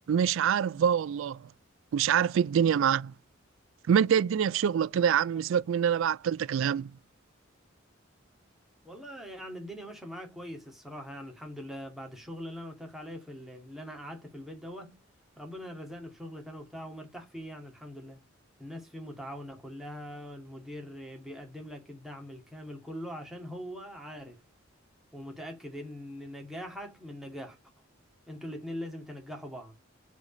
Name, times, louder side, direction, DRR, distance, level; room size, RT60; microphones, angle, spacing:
voice 1, 0.1-1.4 1.9-3.1 3.9-6.9, right 8 dB, 70° right, 0.3 m, -25 dB
voice 2, 8.8-15.0 15.4-18.2 18.6-24.4 25.1-27.6 28.3-29.8, equal, ahead, 2.1 m, -42 dB
4.9 x 4.0 x 5.2 m
head